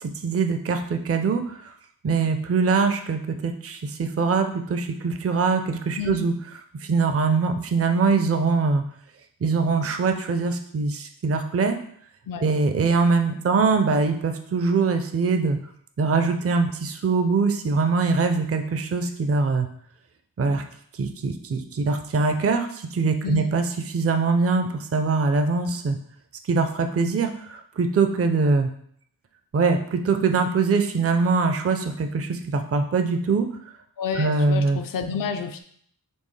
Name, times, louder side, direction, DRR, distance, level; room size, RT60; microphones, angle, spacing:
voice 1, 0.0-1.7 2.0-6.3 6.8-8.8 9.4-11.8 12.4-15.6 16.0-19.7 20.4-20.6 21.0-26.0 26.5-28.7 29.5-33.5 34.2-34.8, right 4 dB, 40° right, 6 dB, 0.5 m, -23 dB
voice 2, 6.0-6.3 12.3-12.5 23.2-23.4 34.0-35.6, left 6 dB, 65° left, 7 dB, 0.5 m, -29 dB
4.4 x 3.2 x 3.2 m, 0.64 s
wide cardioid pair, 60°, 37 cm